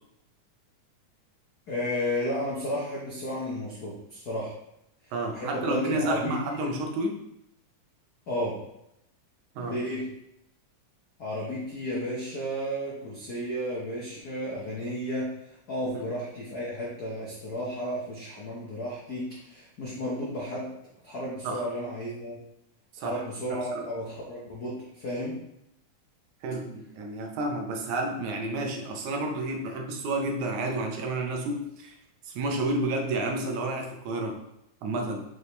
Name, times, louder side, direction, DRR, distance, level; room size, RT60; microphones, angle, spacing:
voice 1, 1.7-4.5 5.3-6.6 8.3-8.6 9.6-10.0 11.2-15.3 15.7-20.7 21.0-22.4 23.0-25.3, equal, 65° left, -6 dB, 0.9 m, -33 dB
voice 2, 5.1-7.2 9.6-9.8 15.9-16.1 21.4-21.7 22.9-23.2 23.5-23.9 26.4-31.9 32.3-34.4 34.8-35.2, right 2 dB, 75° right, 2 dB, 2.1 m, -30 dB
6.2 x 5.0 x 3.2 m, 0.80 s
omnidirectional pair, 3.5 m